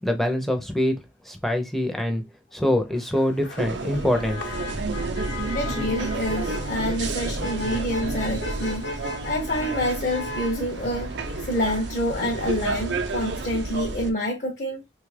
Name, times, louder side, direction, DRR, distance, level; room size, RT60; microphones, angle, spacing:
voice 1, 0.0-2.2 2.5-4.4, left 1 dB, ahead, 0.5 m, -24 dB
Motor vehicle (road), 2.9-13.4, left 2 dB, 75° left, 0.8 m, -38 dB
sound 1, 3.6-14.1, right 3 dB, 70° right, 0.6 m, -31 dB
voice 2, 5.5-11.1 11.4-14.8, left 1 dB, 45° left, 0.6 m, -27 dB
3.1 x 2.3 x 3.1 m
head